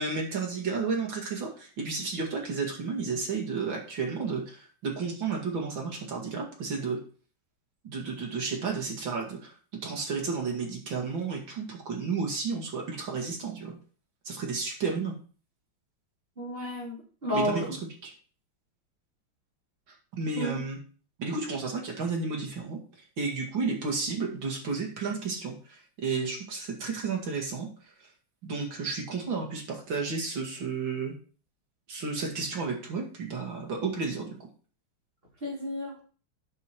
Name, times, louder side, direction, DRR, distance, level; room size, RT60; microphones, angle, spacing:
voice 1, 0.0-7.0 7.8-9.5 9.8-13.8 14.2-15.1 17.3-17.8 18.0-18.1 19.9-20.8 21.2-22.8 23.2-27.7 28.4-31.1 31.9-34.3, right 4 dB, 65° right, 1 dB, 2.8 m, -32 dB
voice 2, 16.4-17.7 20.4-20.6 35.4-36.0, equal, 25° right, -4 dB, 3.5 m, -32 dB
8.1 x 6.7 x 4.5 m, 0.39 s
omnidirectional pair, 2.2 m